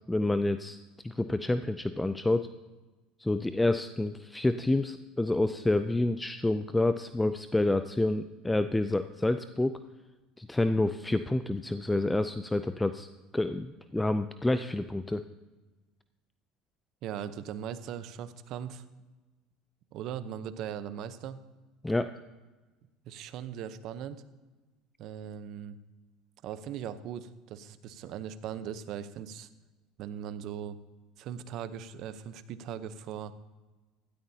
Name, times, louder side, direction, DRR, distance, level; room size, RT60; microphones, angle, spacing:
voice 1, 0.1-0.8 1.0-2.5 3.2-9.7 10.4-13.1 13.3-15.2 21.8-22.1, left 2 dB, 10° left, 11 dB, 0.5 m, -28 dB
voice 2, 17.0-18.8 19.9-21.4 23.1-24.2 25.0-25.8 26.4-29.5 30.0-30.8 31.2-33.3, right 9 dB, 60° right, 13 dB, 0.8 m, -39 dB
16.0 x 13.0 x 2.8 m, 1.2 s
supercardioid pair, 90°, 0 cm